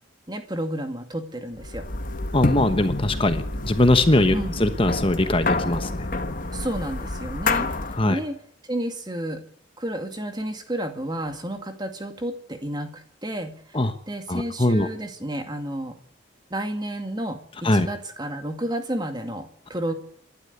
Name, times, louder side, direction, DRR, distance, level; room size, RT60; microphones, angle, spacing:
voice 1, 0.3-1.8 4.3-4.6 6.5-7.7 8.1-8.4 8.6-9.4 9.8-13.8 14.1-16.0 16.5-19.9, right 1 dB, 20° right, 7 dB, 2.1 m, -31 dB
sound 1, 1.6-8.1, left 2 dB, 40° left, 1.4 m, -28 dB
voice 2, 2.3-6.1 7.9-8.2 13.7-14.0 14.3-14.9 17.6-17.9, left 1 dB, 25° left, 9 dB, 1.2 m, -21 dB
27.5 x 12.0 x 8.2 m, 0.66 s
head